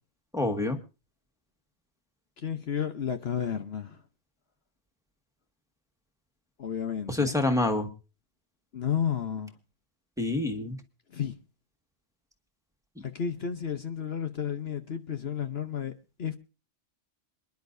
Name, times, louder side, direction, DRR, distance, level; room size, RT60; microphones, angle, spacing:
voice 1, 0.3-0.8 7.1-7.9 10.2-10.8, left 2 dB, 5° right, 1.8 m, -27 dB
voice 2, 2.4-4.0 6.6-7.3 8.7-9.5 11.1-11.3 13.1-15.9 16.2-16.4, left 8 dB, 60° left, 1.2 m, -32 dB
27.0 x 10.5 x 2.6 m
omnidirectional pair, 1.2 m